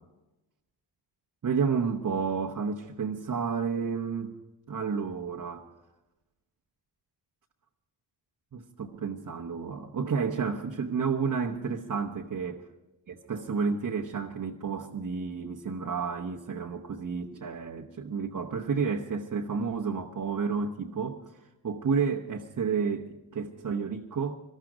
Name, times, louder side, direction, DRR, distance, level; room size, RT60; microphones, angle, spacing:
voice 1, 1.4-4.3 4.7-5.7 8.5-12.6 13.1-21.2 21.6-24.4, right 5 dB, 40° right, 1 dB, 1.2 m, -31 dB
19.0 x 13.0 x 5.1 m, 1.0 s
cardioid pair, 65°, 47 cm